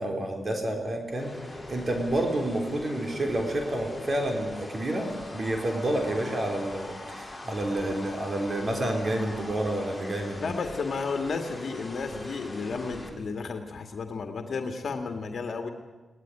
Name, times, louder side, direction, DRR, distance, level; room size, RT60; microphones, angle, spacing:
voice 1, 0.0-10.5, right 1 dB, 35° right, 3 dB, 3.9 m, -29 dB
sound 1, 1.1-13.1, left 2 dB, 10° left, 5.6 m, -41 dB
voice 2, 10.4-15.7, left 4 dB, 60° left, 5 dB, 2.0 m, -33 dB
22.5 x 18.5 x 9.9 m, 1.2 s
wide cardioid pair, 105°, 0 cm